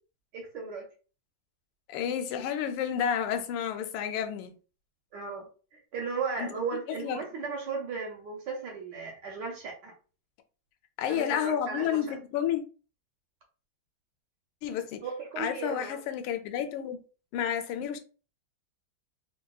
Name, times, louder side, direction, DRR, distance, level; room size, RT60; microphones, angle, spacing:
voice 1, 0.3-0.8 5.1-5.5 5.7-9.9 11.1-12.0 15.0-16.0, right 5 dB, 65° right, 1.2 m, -36 dB
voice 2, 1.9-4.5 6.4-6.5 6.9-7.2 11.0-12.6 14.6-15.0 15.4-17.0 17.3-18.0, left 9 dB, 90° left, 1.5 m, -30 dB
3.6 x 2.7 x 2.3 m
omnidirectional pair, 2.4 m